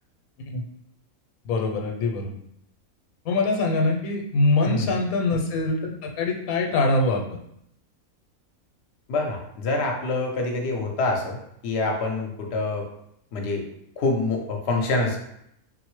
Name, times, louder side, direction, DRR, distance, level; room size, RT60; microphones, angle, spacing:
voice 1, 1.4-2.3 3.2-7.4, left 2 dB, 90° left, 2 dB, 1.1 m, -23 dB
voice 2, 4.7-5.0 9.1-11.4 11.6-12.9 13.3-13.6 14.0-15.2, left 2 dB, 60° left, 1 dB, 0.8 m, -26 dB
4.2 x 2.0 x 3.0 m, 0.75 s
omnidirectional pair, 1.5 m